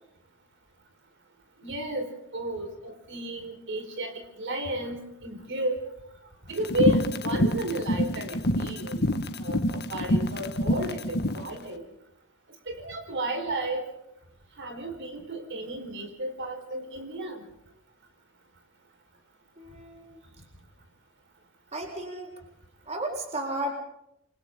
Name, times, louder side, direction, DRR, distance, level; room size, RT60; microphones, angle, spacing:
voice 1, 1.6-5.8 6.5-9.0 9.4-11.8 12.7-13.8 14.6-17.5, right 1 dB, 60° right, 5 dB, 4.7 m, -32 dB
sound 1, 6.6-11.4, left 1 dB, 50° left, 1.5 m, -26 dB
voice 2, 19.6-20.2 21.7-22.3 22.9-23.7, right 1 dB, 30° right, 1 dB, 4.3 m, -33 dB
28.5 x 25.0 x 3.8 m, 0.82 s
head